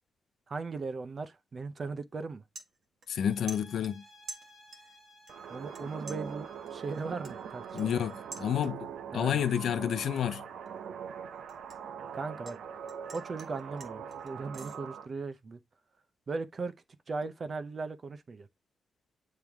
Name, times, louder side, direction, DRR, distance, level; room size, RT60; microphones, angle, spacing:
voice 1, 0.5-2.4 5.5-8.0 9.1-9.6 12.1-12.6 13.1-15.6 16.3-16.7 17.1-18.5, right 4 dB, 35° right, 0.6 m, -38 dB
sound 1, 1.6-1.8 2.2-3.2 3.5-5.0 5.3-5.8 6.1-9.0 9.4-9.7 10.1-12.6 12.9-14.8, right 4 dB, 50° right, 1.3 m, -49 dB
voice 2, 3.1-4.0 7.7-10.5, left 9 dB, 70° left, 0.6 m, -30 dB
sound 2, 3.2-8.5, left 1 dB, 25° left, 1.3 m, -59 dB
sound 3, 5.3-15.1, right 7 dB, 80° right, 0.7 m, -42 dB
8.8 x 3.3 x 3.5 m
wide cardioid pair, 170°, 0 cm